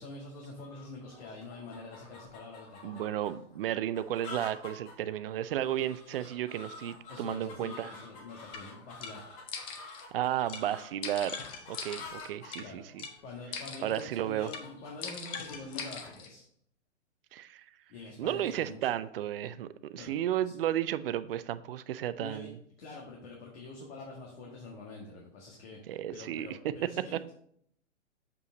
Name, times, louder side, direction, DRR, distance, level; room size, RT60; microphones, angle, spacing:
voice 1, 0.0-3.0 7.1-9.3 12.6-12.8 13.2-16.4 17.9-18.8 19.9-20.2 20.4-20.5 22.2-22.5 22.8-27.3, left 3 dB, 50° left, -2 dB, 1.8 m, -46 dB
sound 1, 0.6-16.2, left 4 dB, 35° left, 1.8 m, -49 dB
voice 2, 2.8-7.9 10.1-11.4 11.7-13.0 13.8-14.5 17.3-17.6 18.2-22.6 25.9-26.7 27.1-27.2, right 11 dB, 50° right, 14 dB, 0.5 m, -33 dB
sound 2, 8.5-8.6 9.0-9.1 9.5-10.0 10.5-10.6 11.0-12.6 13.0-13.1 13.5-14.1 14.5-14.6 15.0-16.3, left 6 dB, 15° left, 0.4 m, -41 dB
7.0 x 5.4 x 3.9 m, 0.68 s
hypercardioid pair, 130°, 37 cm